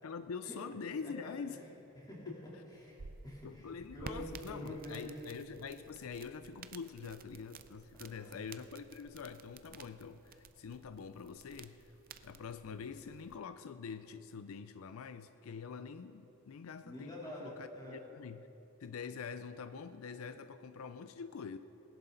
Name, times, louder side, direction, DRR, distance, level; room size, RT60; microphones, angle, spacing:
voice 1, 0.0-1.6 2.3-2.4 3.4-11.9 12.2-17.1 17.4-18.5 18.8-21.6, left 5 dB, 85° left, 11 dB, 0.5 m, -45 dB
voice 2, 1.0-1.6 1.9-2.3 2.7-5.1 7.9-8.3 13.0-13.1 16.8-18.0, left 1 dB, 20° left, -5 dB, 3.1 m, -47 dB
sound 1, 2.7-13.4, right 5 dB, 45° right, 0.5 m, -54 dB
20.0 x 11.0 x 3.9 m, 3.0 s
head